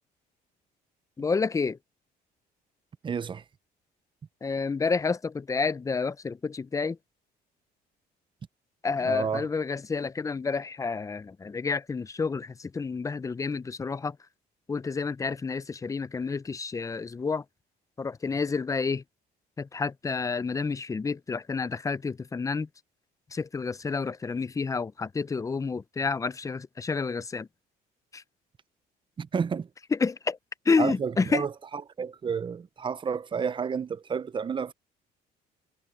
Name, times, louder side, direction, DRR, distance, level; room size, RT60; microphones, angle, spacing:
voice 1, 1.2-1.8 4.4-7.0 8.8-14.2 14.7-17.4 18.0-19.0 19.6-22.7 23.3-27.5 28.1-28.2 29.9-30.4 30.7-31.5, left 4 dB, 20° left, 0.6 m, -29 dB
voice 2, 3.0-3.4 9.0-9.5 29.2-29.7 30.8-34.7, right 6 dB, 30° right, 0.7 m, -31 dB
cardioid pair, 110°, 17 cm